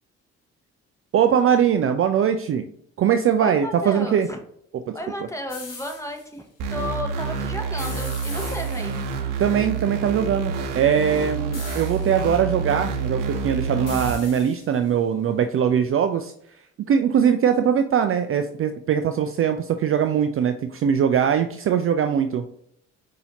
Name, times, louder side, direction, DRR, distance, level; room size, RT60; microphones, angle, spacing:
voice 1, 1.1-2.6 3.0-4.3 9.4-16.3 16.9-22.4, right 8 dB, 40° right, 8 dB, 0.4 m, -21 dB
voice 2, 3.4-4.4 4.9-9.0, left 1 dB, 10° left, 3 dB, 1.1 m, -33 dB
sound 1, 5.5-6.3 7.8-9.2 11.5-12.3 13.9-14.9, left 4 dB, 45° left, 1.4 m, -40 dB
sound 2, 6.6-14.1, right 5 dB, 70° right, 0.7 m, -28 dB
5.4 x 2.8 x 2.9 m, 0.68 s
hypercardioid pair, 50°, 34 cm